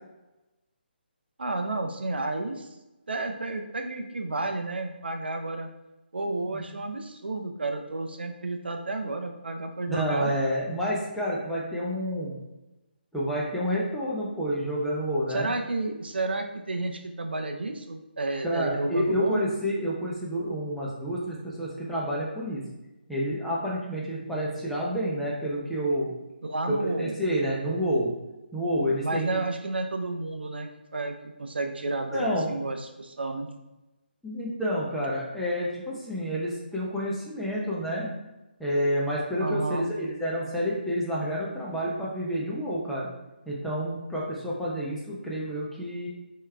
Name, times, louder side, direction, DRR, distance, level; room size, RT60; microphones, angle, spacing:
voice 1, 1.4-2.7 3.1-5.7 6.1-10.3 15.3-19.4 26.4-27.2 29.0-31.1 31.4-33.5 39.4-39.9, right 2 dB, 70° right, 5 dB, 0.6 m, -31 dB
voice 2, 9.9-12.3 13.1-15.5 18.4-22.6 23.1-26.1 26.7-28.1 28.5-29.4 32.1-32.5 34.2-38.1 38.6-43.1 43.5-46.1, equal, ahead, -7 dB, 0.7 m, -29 dB
4.5 x 3.0 x 3.3 m, 1.0 s
figure-of-eight pair, 145°, 6 cm